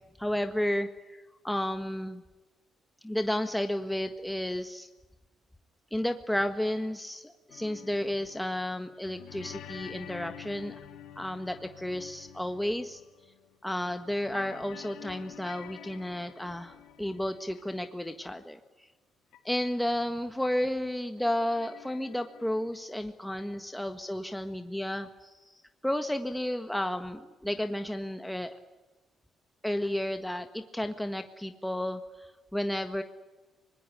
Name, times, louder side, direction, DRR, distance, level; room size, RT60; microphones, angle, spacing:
voice 1, 0.2-2.2 3.0-4.9 5.9-10.7 11.1-13.0 13.6-18.6 19.4-25.3 25.8-28.6 29.6-33.0, left 1 dB, 5° left, 7 dB, 1.7 m, -32 dB
sound 1, 7.5-13.6 13.9-17.9 19.3-19.4 19.7-19.8 21.2-22.7, left 10 dB, 90° left, 2.3 m, -49 dB
24.0 x 21.0 x 9.8 m, 1.1 s
cardioid pair, 90°, 0 cm